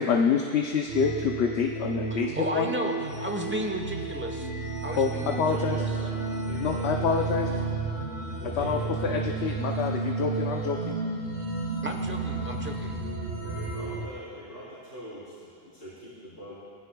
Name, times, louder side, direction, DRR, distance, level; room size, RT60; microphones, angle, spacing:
voice 1, 0.0-2.7 5.0-5.1 5.4-5.9 6.6-7.5 8.5-11.0, left 6 dB, 75° left, 2 dB, 1.0 m, -27 dB
sound 1, 0.9-14.1, right 3 dB, 85° right, 2.6 m, -32 dB
voice 2, 2.1-4.5 4.8-6.1 11.8-13.0, right 1 dB, 10° right, 3 dB, 1.0 m, -34 dB
voice 3, 5.4-7.6 8.3-9.2 13.4-16.7, equal, 50° left, -12 dB, 3.8 m, -43 dB
20.0 x 15.5 x 2.3 m, 2.5 s
omnidirectional pair, 1.1 m